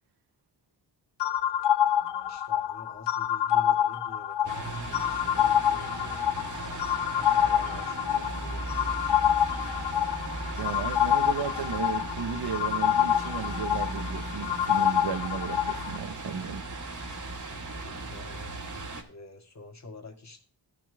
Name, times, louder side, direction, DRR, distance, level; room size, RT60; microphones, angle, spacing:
sound 1, 1.2-16.0, left 10 dB, 80° left, 0.6 m, -27 dB
voice 1, 1.8-9.2 17.5-18.5 19.1-20.4, left 2 dB, 40° left, 2.1 m, -48 dB
sound 2, 4.4-19.0, right 2 dB, 45° right, 2.0 m, -37 dB
voice 2, 10.6-16.6, right 6 dB, 65° right, 1.0 m, -34 dB
14.0 x 6.1 x 3.4 m
wide cardioid pair, 90°, 42 cm